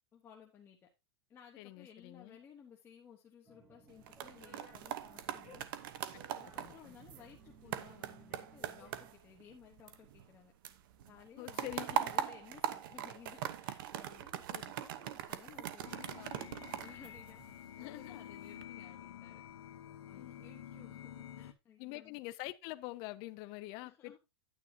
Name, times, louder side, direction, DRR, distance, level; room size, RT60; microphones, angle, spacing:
voice 1, 0.1-0.9 1.3-5.7 6.3-10.5 11.1-14.4 14.7-17.4 17.7-19.4 20.1-22.2 23.8-24.2, left 8 dB, 15° left, 1.1 m, -58 dB
voice 2, 1.6-2.4 6.1-6.2 6.6-6.9 11.4-12.0 14.5-14.6 17.8-18.2 20.1-20.4 21.8-24.2, left 19 dB, 30° left, 0.5 m, -46 dB
sound 1, 3.4-9.1, right 1 dB, 10° right, 3.0 m, -59 dB
sound 2, 3.9-10.4 10.6-17.8 18.3-18.6, right 11 dB, 50° right, 0.9 m, -41 dB
sound 3, 15.8-21.5, left 10 dB, 85° left, 1.0 m, -50 dB
9.8 x 9.3 x 2.8 m
supercardioid pair, 165°, 14 cm